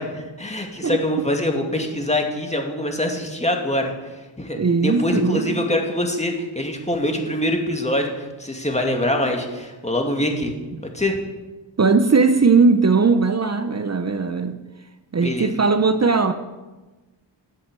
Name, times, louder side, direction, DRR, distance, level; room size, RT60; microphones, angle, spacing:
voice 1, 0.0-10.6 10.9-11.2 15.2-15.5, left 1 dB, 15° left, 2 dB, 2.3 m, -24 dB
voice 2, 4.5-5.6 10.7-10.8 11.8-14.6 15.1-16.3, right 4 dB, 35° right, 9 dB, 0.8 m, -18 dB
12.0 x 7.9 x 6.9 m, 1.2 s
cardioid pair, 65°, 46 cm